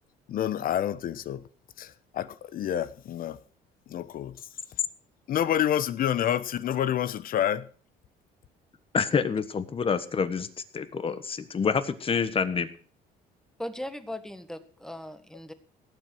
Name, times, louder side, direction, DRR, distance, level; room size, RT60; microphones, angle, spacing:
voice 1, 0.3-1.5 1.8-3.4 3.9-4.4 5.3-7.7, left 10 dB, 60° left, 1.0 m, -28 dB
voice 2, 8.9-10.5 10.7-12.7, left 6 dB, 35° left, 1.4 m, -27 dB
voice 3, 13.6-15.5, left 1 dB, 5° left, 1.6 m, -38 dB
17.5 x 7.6 x 6.3 m
cardioid pair, 110°, 17 cm